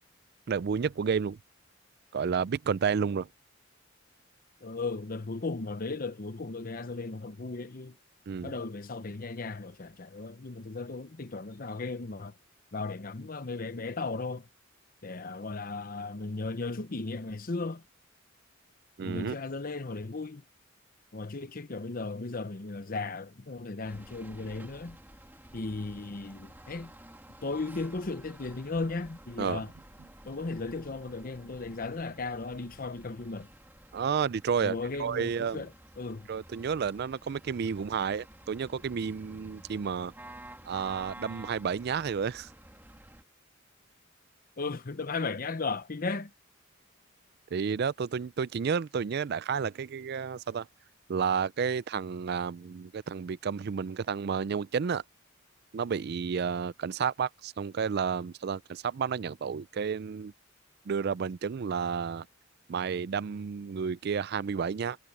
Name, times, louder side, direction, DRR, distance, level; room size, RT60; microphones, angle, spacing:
voice 1, 0.5-1.4 2.1-3.3 8.3-8.5 19.0-19.4 29.4-29.6 33.9-35.6 36.3-40.1 40.6-42.5 47.5-50.7 51.1-55.0 55.7-60.3 60.9-62.3 62.7-65.0, right 6 dB, 50° right, 0.4 m, -31 dB
voice 2, 4.6-8.0 8.4-12.3 12.7-14.5 15.0-17.8 19.0-20.4 21.1-25.0 25.5-26.9 27.4-29.7 30.2-33.5 34.6-35.7 36.0-36.3 44.6-46.3, left 3 dB, 45° left, 0.8 m, -36 dB
sound 1, 23.8-43.2, right 1 dB, 10° right, 1.9 m, -51 dB
head